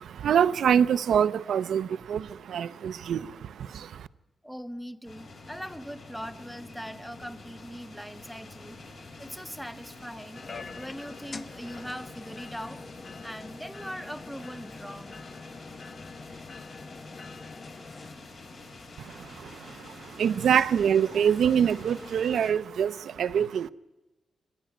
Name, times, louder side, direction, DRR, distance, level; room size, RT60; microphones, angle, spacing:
voice 1, 0.0-4.1 19.0-23.7, right 8 dB, 85° right, 0.6 m, -25 dB
voice 2, 4.4-8.8 9.2-12.8 13.2-15.2, equal, ahead, 0.8 m, -41 dB
sound 1, 5.0-22.5, left 2 dB, 60° left, 4.9 m, -47 dB
sound 2, 10.3-18.1, left 4 dB, 35° left, 0.8 m, -44 dB
26.5 x 10.5 x 9.1 m
wide cardioid pair, 115°, 0 cm